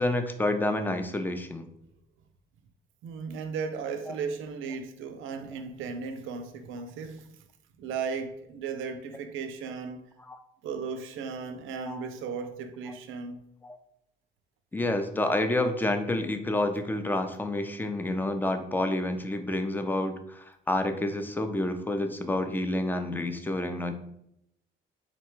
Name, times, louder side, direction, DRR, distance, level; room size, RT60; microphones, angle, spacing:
voice 1, 0.0-1.7 10.3-10.4 11.9-12.0 13.6-13.8 14.7-23.9, left 1 dB, 10° left, 0.4 m, -29 dB
voice 2, 3.0-7.3 7.8-10.1 10.6-13.4, right 5 dB, 85° right, 0.5 m, -36 dB
3.9 x 2.2 x 4.4 m
cardioid pair, 90°, 20 cm